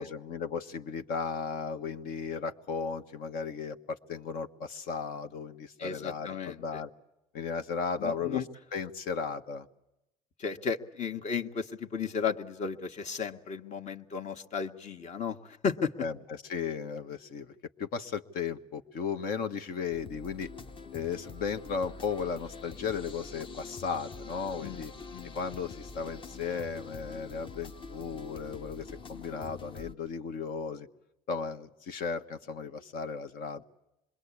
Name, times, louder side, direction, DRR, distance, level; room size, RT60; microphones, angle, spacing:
voice 1, 0.0-6.9 7.3-8.4 8.7-9.7 16.0-17.5 17.8-20.5 20.9-24.9 25.3-30.9 31.3-33.6, left 5 dB, 70° left, 8 dB, 1.5 m, -35 dB
voice 2, 5.8-6.8 8.0-8.4 10.4-15.9 24.6-24.8 25.1-25.3, left 6 dB, 50° left, 7 dB, 1.7 m, -34 dB
sound 1, 19.9-29.9, left 4 dB, 35° left, 1.0 m, -45 dB
26.5 x 22.0 x 8.5 m, 0.89 s
supercardioid pair, 95°, 15 cm